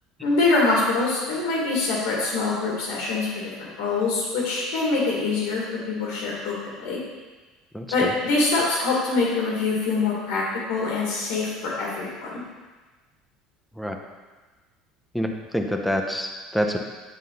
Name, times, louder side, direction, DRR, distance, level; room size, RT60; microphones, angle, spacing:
voice 1, 0.2-6.6 6.8-7.0 7.9-12.4, left 3 dB, 85° left, -4 dB, 2.0 m, -24 dB
voice 2, 7.7-8.1 13.8-14.0 15.1-16.8, equal, ahead, 3 dB, 0.5 m, -26 dB
9.2 x 4.0 x 3.9 m, 1.3 s
cardioid pair, 175°, 0 cm